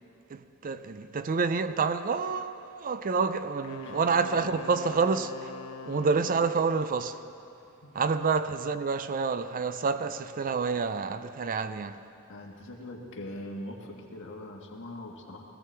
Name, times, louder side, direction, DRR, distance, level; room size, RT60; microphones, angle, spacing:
voice 1, 0.3-5.5 5.8-7.2 7.9-12.0, right 4 dB, 40° right, 0.4 m, -28 dB
Wind instrument woodwind instrument, 3.6-6.8, left 4 dB, 90° left, 0.8 m, -43 dB
voice 2, 12.3-15.4, left 1 dB, 60° left, 1.7 m, -41 dB
18.5 x 15.5 x 4.5 m
head